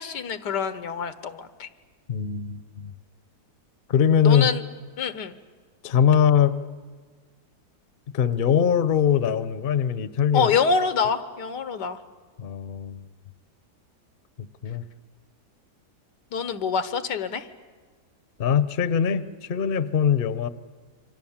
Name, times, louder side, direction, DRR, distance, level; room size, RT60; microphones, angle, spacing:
voice 1, 0.0-1.7 4.2-4.6 5.0-5.3 10.3-12.0 16.3-17.5, left 6 dB, 90° left, 11 dB, 1.7 m, -26 dB
voice 2, 2.1-2.9 3.9-4.5 5.8-6.6 8.1-10.5 12.4-13.0 14.4-14.8 18.4-20.5, left 8 dB, 45° left, 13 dB, 0.8 m, -22 dB
29.0 x 25.0 x 7.3 m, 1.5 s
omnidirectional pair, 1.8 m